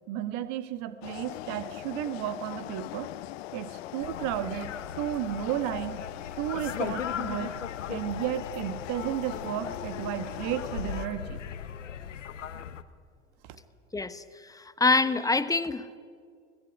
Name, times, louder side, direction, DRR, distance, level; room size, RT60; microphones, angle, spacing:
voice 1, 0.1-3.1 3.5-4.7 5.0-6.0 6.4-7.6 7.9-11.4, right 11 dB, 50° right, 10 dB, 1.6 m, -33 dB
sound 1, 1.0-11.1, left 18 dB, 55° left, 0.7 m, -41 dB
sound 2, 4.0-12.8, left 8 dB, 80° left, 1.1 m, -38 dB
voice 2, 13.9-16.0, left 3 dB, 10° left, 12 dB, 1.0 m, -26 dB
23.5 x 18.0 x 9.6 m, 2.1 s
figure-of-eight pair, 85°, 37 cm